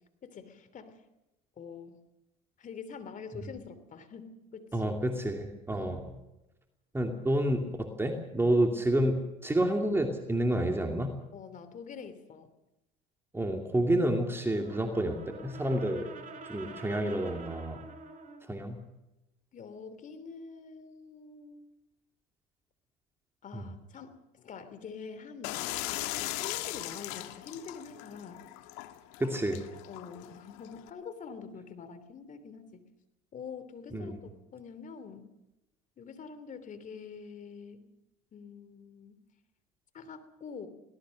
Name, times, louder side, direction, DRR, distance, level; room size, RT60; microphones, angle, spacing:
voice 1, 0.2-1.0 1.6-2.0 2.6-4.9 5.7-6.0 11.3-12.5 19.5-21.7 23.4-28.4 29.9-32.8 33.3-34.2 34.5-35.3 36.0-37.9 38.3-39.2 39.9-40.7, left 6 dB, 40° left, 11 dB, 3.1 m, -45 dB
voice 2, 4.7-6.0 6.9-11.1 13.3-16.1 16.4-17.8 18.5-18.8 23.5-23.6 29.2-29.6 33.9-34.2, right 1 dB, 10° right, 3 dB, 2.7 m, -29 dB
Brass instrument, 14.4-18.5, right 4 dB, 40° right, 4.3 m, -47 dB
sound 1, 25.4-30.9, left 17 dB, 75° left, 1.6 m, -39 dB
22.5 x 18.0 x 6.5 m, 0.97 s
supercardioid pair, 85°, 20 cm